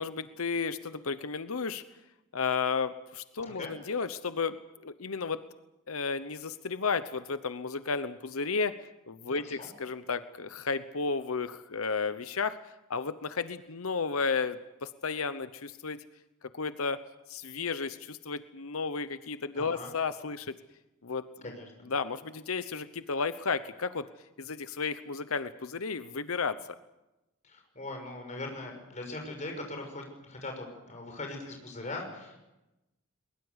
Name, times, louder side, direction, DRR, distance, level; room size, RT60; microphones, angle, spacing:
voice 1, 0.0-1.8 2.3-4.6 4.8-5.4 5.9-8.8 9.1-12.6 12.9-16.0 16.5-17.0 17.3-20.6 21.0-21.2 21.9-24.1 24.4-26.6, left 5 dB, 70° left, 12 dB, 0.9 m, -33 dB
voice 2, 19.5-19.9 21.4-21.7 27.4-32.4, left 2 dB, 35° left, 3 dB, 5.9 m, -40 dB
22.5 x 21.5 x 8.1 m, 0.97 s
head